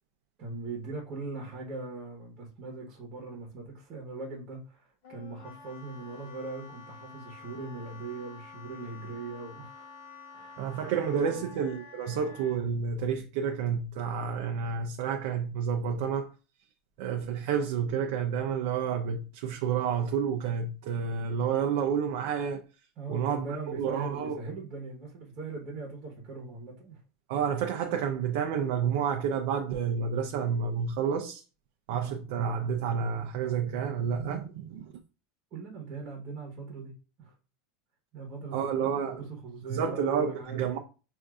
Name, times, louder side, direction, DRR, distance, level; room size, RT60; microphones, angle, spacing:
voice 1, 0.4-9.9 10.3-10.6 10.9-11.5 23.0-27.0 31.9-32.1 35.5-36.9 37.2-37.3 38.1-40.8, right 3 dB, 30° right, 1.1 m, -40 dB
Wind instrument woodwind instrument, 5.0-12.6, left 4 dB, 60° left, 0.8 m, -49 dB
voice 2, 10.6-16.3 17.0-22.6 23.1-24.4 27.3-31.4 31.9-34.9 38.5-39.2 39.7-40.8, right 7 dB, 55° right, 0.5 m, -30 dB
6.3 x 2.6 x 2.3 m
supercardioid pair, 170°, 0 cm